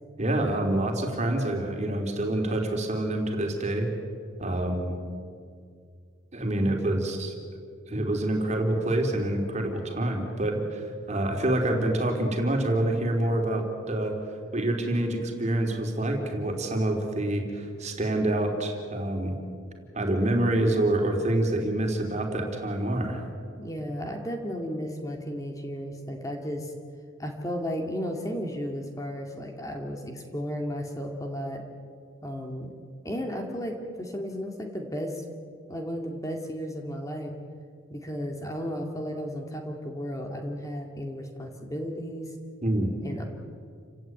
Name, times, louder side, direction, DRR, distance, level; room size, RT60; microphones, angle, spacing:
voice 1, 0.2-3.9 4.4-5.0 6.3-7.3 7.9-14.1 14.5-19.3 19.9-23.2 42.6-42.9, right 1 dB, 35° right, 3 dB, 3.4 m, -27 dB
voice 2, 23.6-26.7 27.2-31.6 32.2-32.7 33.0-35.2 35.7-37.3 37.9-42.3 43.0-43.2, equal, 15° left, 2 dB, 2.2 m, -34 dB
29.0 x 17.0 x 9.3 m, 2.2 s
head